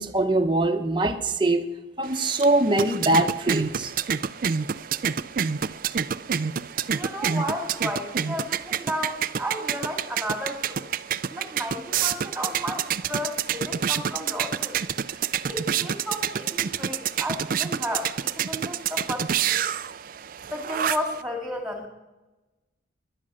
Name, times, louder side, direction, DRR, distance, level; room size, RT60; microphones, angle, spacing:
voice 1, 0.0-1.7 2.0-3.9, right 2 dB, 25° right, 5 dB, 1.0 m, -23 dB
sound 1, 2.0-21.2, right 8 dB, 45° right, 0.4 m, -28 dB
voice 2, 6.9-10.8 11.3-14.8 15.5-19.7 20.5-21.9, equal, 5° right, 2 dB, 2.5 m, -33 dB
18.5 x 11.0 x 6.4 m, 1.1 s
head